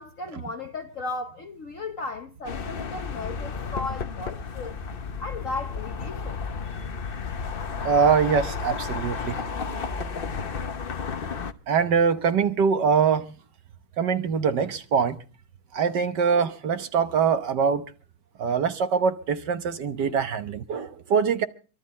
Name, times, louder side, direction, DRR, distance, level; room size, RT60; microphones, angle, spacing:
voice 1, 0.0-4.8 5.2-6.4, left 3 dB, 55° left, 0.9 m, -35 dB
sound 1, 2.4-11.5, left 5 dB, 80° left, 0.5 m, -32 dB
voice 2, 7.8-9.4 11.7-13.3 14.0-15.2 15.7-17.8 18.4-21.5, right 6 dB, 60° right, 1.5 m, -23 dB
24.0 x 12.5 x 4.2 m
omnidirectional pair, 2.4 m